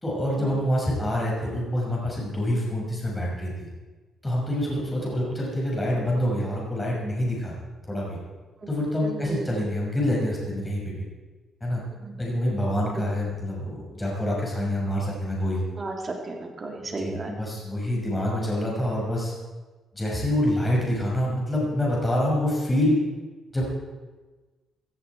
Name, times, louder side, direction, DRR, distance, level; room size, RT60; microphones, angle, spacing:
voice 1, 0.0-3.7 4.2-7.6 7.8-8.2 8.7-11.0 11.6-11.8 12.2-15.6 16.8-19.3 19.9-23.0 23.5-23.7, left 1 dB, 15° left, -3 dB, 6.0 m, -26 dB
voice 2, 9.0-9.5 12.0-12.1 15.8-17.3, right 3 dB, 35° right, 1 dB, 3.4 m, -34 dB
16.5 x 15.0 x 4.7 m, 1.3 s
cardioid pair, 90°, 0 cm